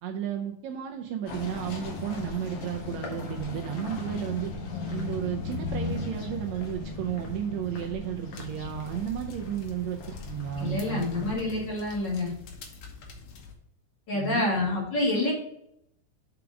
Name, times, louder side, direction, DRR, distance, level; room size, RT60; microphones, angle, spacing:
voice 1, 0.0-4.5 4.9-11.3 14.1-14.5, right 9 dB, 75° right, 3 dB, 1.8 m, -33 dB
sound 1, 1.3-11.4, left 3 dB, 55° left, 1.4 m, -37 dB
sound 2, 8.4-13.5, left 4 dB, 80° left, 2.8 m, -47 dB
voice 2, 10.6-12.3 14.1-15.3, left 2 dB, 40° left, -3 dB, 2.1 m, -27 dB
5.9 x 4.8 x 5.1 m, 0.76 s
omnidirectional pair, 3.6 m